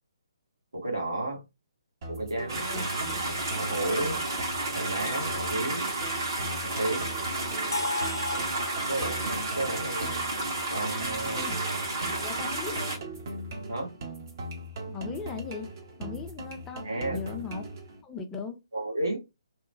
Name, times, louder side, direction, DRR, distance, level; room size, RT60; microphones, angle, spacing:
voice 1, 0.7-1.4 2.1-2.8 3.6-4.2 4.7-5.9 6.6-7.1 8.3-8.5 8.9-10.3 10.7-11.4 13.7-13.9 16.8-17.2 18.7-19.2, right 2 dB, 80° right, 1.3 m, -32 dB
sound 1, 2.0-18.0, right 2 dB, 45° right, 0.8 m, -39 dB
sound 2, 2.5-13.0, right 2 dB, 60° right, 1.3 m, -32 dB
sound 3, 7.7-11.6, left 2 dB, 80° left, 0.4 m, -37 dB
voice 2, 11.3-13.0 14.9-15.7 16.0-17.6 18.0-18.6, left 5 dB, 15° left, 0.4 m, -39 dB
2.8 x 2.1 x 2.5 m
figure-of-eight pair, 135°, 2 cm